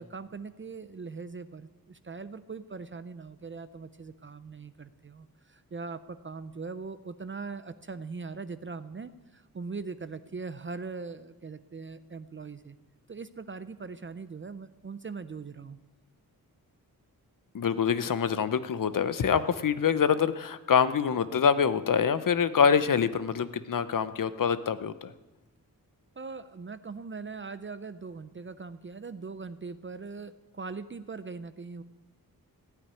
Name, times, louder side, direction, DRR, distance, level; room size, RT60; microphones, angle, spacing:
voice 1, 0.0-12.8 13.1-15.8 26.2-31.8, right 4 dB, 35° right, 12 dB, 0.6 m, -41 dB
voice 2, 17.5-25.1, left 7 dB, 65° left, 13 dB, 0.8 m, -25 dB
15.5 x 8.8 x 9.7 m, 1.1 s
wide cardioid pair, 130°, 35 cm